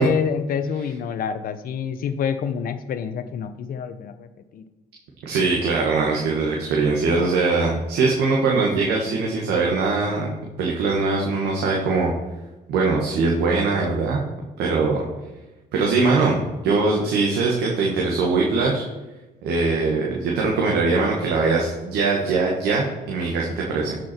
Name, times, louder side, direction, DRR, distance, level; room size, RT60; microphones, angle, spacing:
voice 1, 0.0-4.6, left 7 dB, 60° left, 10 dB, 0.9 m, -27 dB
voice 2, 5.2-10.3 10.6-12.1 12.7-14.2 14.6-15.0 15.7-16.4 16.6-18.8 19.4-23.9, right 3 dB, 80° right, -2 dB, 1.8 m, -21 dB
13.5 x 6.2 x 4.5 m, 1.1 s
cardioid pair, 110°, 17 cm